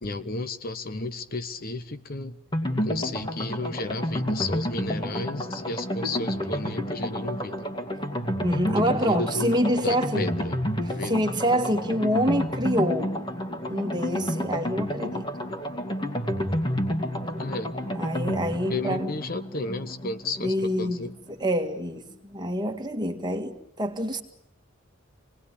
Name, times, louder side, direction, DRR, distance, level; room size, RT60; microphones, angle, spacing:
voice 1, 0.0-2.4 2.8-7.7 8.9-9.5 9.8-10.6 10.9-11.1 17.4-17.7 18.7-21.1, left 2 dB, 45° left, 1.1 m, -33 dB
sound 1, 2.5-21.1 21.4-21.5 21.8-21.9, equal, 25° left, 2.5 m, -30 dB
voice 2, 8.4-10.3 11.1-13.1 13.7-15.3 18.0-19.1 20.4-21.0 21.3-24.2, equal, 20° right, 2.0 m, -26 dB
27.5 x 19.5 x 9.9 m
head